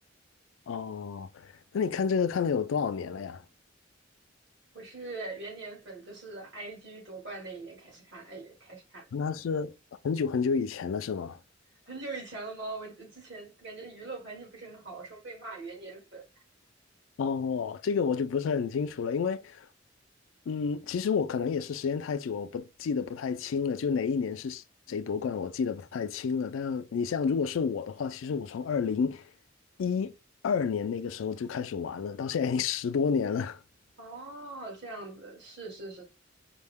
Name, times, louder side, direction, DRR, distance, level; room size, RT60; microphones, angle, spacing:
voice 1, 0.7-3.4 9.1-9.7 10.0-11.4 17.2-19.7 20.5-29.3 29.8-30.1 30.4-33.6, left 6 dB, 85° left, 0.4 m, -30 dB
voice 2, 4.7-9.1 11.9-16.2 34.0-36.0, right 3 dB, 65° right, 1.8 m, -42 dB
5.2 x 2.1 x 3.5 m
head